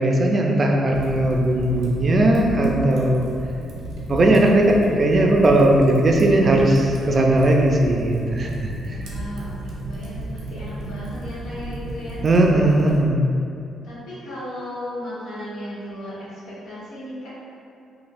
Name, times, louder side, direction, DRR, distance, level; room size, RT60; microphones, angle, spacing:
voice 1, 0.0-3.3 4.1-8.7 12.2-13.2, right 1 dB, 40° right, 0 dB, 0.4 m, -18 dB
Fire, 0.9-13.0, right 1 dB, 85° right, 0.6 m, -33 dB
voice 2, 8.9-12.2 13.8-16.1 16.6-17.3, left 1 dB, 85° left, -11 dB, 1.3 m, -35 dB
3.9 x 2.2 x 2.6 m, 2.5 s
cardioid pair, 90°, 0 cm